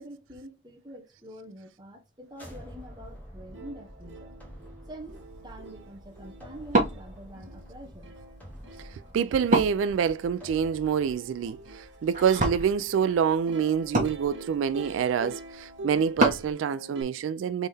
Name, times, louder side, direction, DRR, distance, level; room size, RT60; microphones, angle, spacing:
voice 1, 0.0-4.3 4.9-8.1, right 1 dB, 20° right, 1.1 m, -46 dB
sound 1, 2.3-11.1, equal, 10° left, 1.3 m, -48 dB
Plucked string instrument, 3.1-3.2 3.5-17.0, right 2 dB, 70° right, 1.0 m, -45 dB
Wood, 5.0-16.5, right 1 dB, 40° right, 1.4 m, -33 dB
voice 2, 9.1-17.7, right 7 dB, 90° right, 0.3 m, -26 dB
4.0 x 3.7 x 3.4 m
head